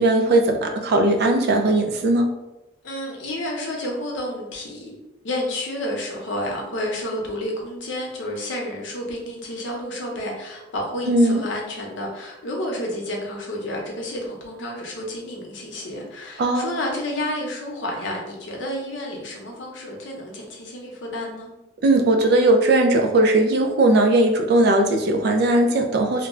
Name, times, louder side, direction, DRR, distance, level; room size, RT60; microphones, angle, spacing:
voice 1, 0.0-2.3 11.1-11.4 16.4-16.8 21.8-26.3, right 2 dB, 60° right, 4 dB, 0.4 m, -18 dB
voice 2, 2.8-5.0 5.2-21.5, left 1 dB, 85° left, 0 dB, 0.7 m, -30 dB
2.2 x 2.0 x 3.5 m, 0.97 s
head